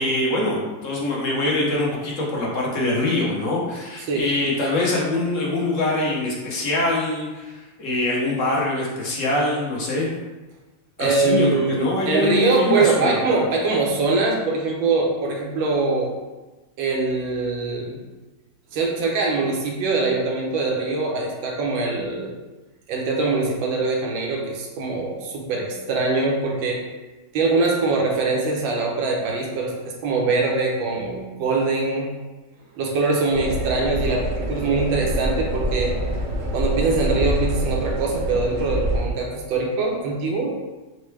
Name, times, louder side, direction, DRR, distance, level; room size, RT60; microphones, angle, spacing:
voice 1, 0.0-10.1 11.0-13.2, left 2 dB, 50° left, -4 dB, 1.1 m, -24 dB
voice 2, 11.0-16.1 16.8-18.0 18.7-22.3 22.9-26.8 27.3-32.1 32.8-35.9 36.5-40.5, right 3 dB, 80° right, -1 dB, 1.5 m, -23 dB
sound 1, 33.3-39.1, equal, 55° right, 0.9 m, -26 dB
4.4 x 2.2 x 4.5 m, 1.2 s
omnidirectional pair, 2.1 m